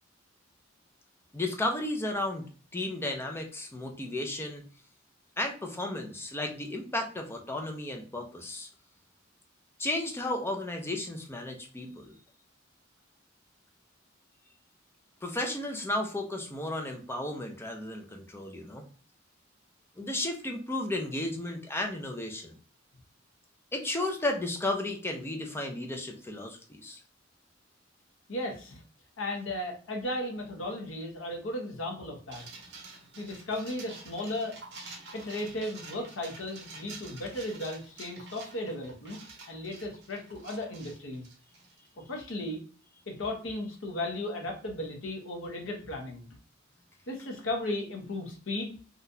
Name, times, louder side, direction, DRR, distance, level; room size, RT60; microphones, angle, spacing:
voice 1, 1.3-2.5 2.7-4.6 5.4-8.7 9.8-12.1 15.2-18.8 20.0-22.5 23.7-27.0, left 1 dB, 10° left, 3 dB, 0.5 m, -33 dB
voice 2, 28.3-28.8 29.2-32.5 33.2-34.6 35.1-39.2 39.5-41.2 42.0-42.6 43.1-46.3 47.1-48.7, left 1 dB, 70° left, 2 dB, 0.9 m, -35 dB
sound 1, 32.3-41.9, right 3 dB, 60° right, 1.0 m, -48 dB
3.8 x 2.4 x 2.7 m, 0.41 s
head